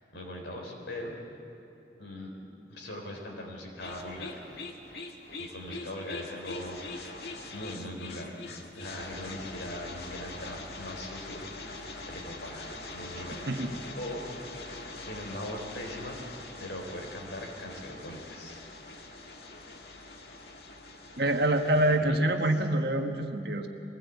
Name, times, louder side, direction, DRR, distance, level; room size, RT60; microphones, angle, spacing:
voice 1, 0.1-1.2 2.0-2.3 2.7-4.5 5.4-8.4 8.7-16.2 16.6-19.3 21.7-22.2, left 1 dB, 85° left, 1 dB, 3.9 m, -41 dB
sound 1, 3.8-22.0, left 2 dB, 65° left, 1.7 m, -43 dB
voice 2, 13.5-13.8 21.2-23.7, right 1 dB, 60° right, 4 dB, 1.4 m, -26 dB
21.5 x 16.0 x 8.3 m, 2.9 s
head